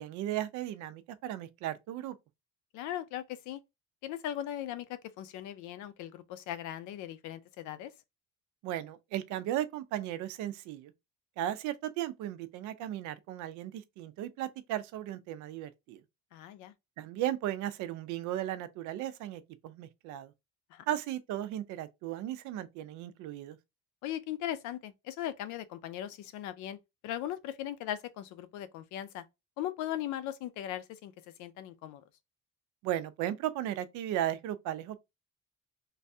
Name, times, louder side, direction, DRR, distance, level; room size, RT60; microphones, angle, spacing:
voice 1, 0.0-2.2 8.6-10.9 11.4-16.0 17.0-20.3 20.9-23.6 32.8-35.0, right 12 dB, 85° right, 0.5 m, -36 dB
voice 2, 2.7-3.6 4.0-7.9 16.3-16.7 20.7-20.8 24.0-26.8 27.0-29.2 29.6-31.1 31.4-32.0, left 12 dB, 85° left, 0.5 m, -38 dB
3.2 x 2.2 x 2.6 m
cardioid pair, 175°, 29 cm